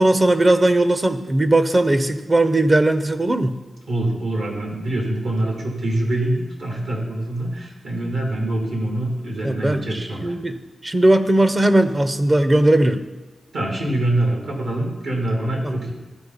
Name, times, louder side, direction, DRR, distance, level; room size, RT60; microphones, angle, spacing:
voice 1, 0.0-3.6 9.4-10.6 10.8-13.0 15.6-15.7, right 1 dB, 30° right, 10 dB, 0.7 m, -18 dB
voice 2, 3.9-10.3 13.5-15.9, right 1 dB, 80° right, -1 dB, 2.6 m, -24 dB
13.5 x 4.5 x 4.1 m, 1.2 s
supercardioid pair, 45°, 0 cm